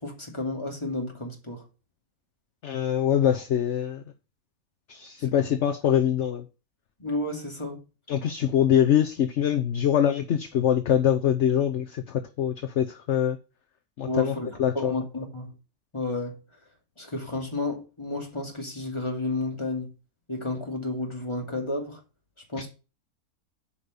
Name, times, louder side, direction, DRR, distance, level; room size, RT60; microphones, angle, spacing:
voice 1, 0.0-1.6 5.2-5.3 7.0-7.8 14.1-15.5 15.9-16.4 17.0-19.9 20.3-22.0 22.5-22.7, left 2 dB, 20° left, 2.4 m, -31 dB
voice 2, 2.6-4.0 4.9-6.4 8.1-13.4 14.0-14.9, left 9 dB, 55° left, 1.0 m, -24 dB
8.7 x 5.3 x 6.8 m
omnidirectional pair, 1.6 m